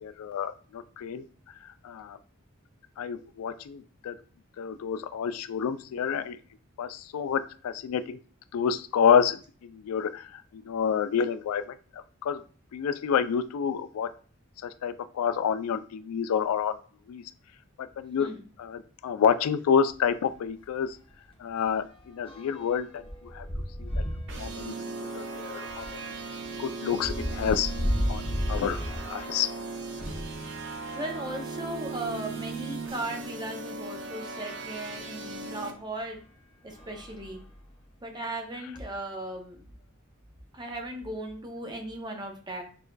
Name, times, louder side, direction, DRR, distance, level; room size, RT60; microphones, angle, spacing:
voice 1, 0.0-1.2 1.8-2.2 3.0-4.1 4.6-6.4 6.8-8.2 8.5-10.2 10.5-11.6 12.2-12.4 12.7-14.1 14.6-16.8 17.1-17.2 17.8-18.3 18.6-21.0 21.4-23.0 23.3-23.4 23.8-23.9 24.4-24.7 25.2-25.8 26.6-27.7 28.1-28.8 29.1-29.5, left 7 dB, 90° left, 12 dB, 0.3 m, -28 dB
sound 1, 19.9-20.1 20.4-20.5 20.9-30.4 31.1-32.4 33.1-33.2 33.5-33.6 35.2-35.4 36.0-36.2 36.7-37.9, equal, 25° left, 0.8 m, -35 dB
sound 2, 24.3-35.7, right 3 dB, 60° right, 0.6 m, -38 dB
voice 2, 30.9-36.2 36.6-37.4 38.0-39.6 40.5-42.6, right 1 dB, 20° right, 2 dB, 0.6 m, -37 dB
6.6 x 2.5 x 2.2 m, 0.41 s
head